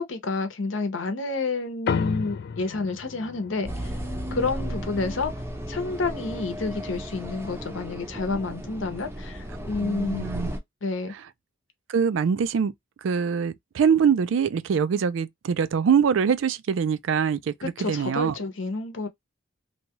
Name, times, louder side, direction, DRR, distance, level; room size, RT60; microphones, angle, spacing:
voice 1, 0.0-3.9 4.3-5.3 5.7-10.3 10.8-11.1 17.6-19.1, left 3 dB, 70° left, 0.8 m, -29 dB
sound 1, 1.9-6.6, left 6 dB, 55° left, 0.3 m, -34 dB
sound 2, 3.6-10.6, equal, 10° right, 0.6 m, -34 dB
voice 2, 9.8-10.5 11.9-12.7 13.0-18.3, right 7 dB, 70° right, 0.3 m, -23 dB
2.8 x 2.3 x 2.9 m
head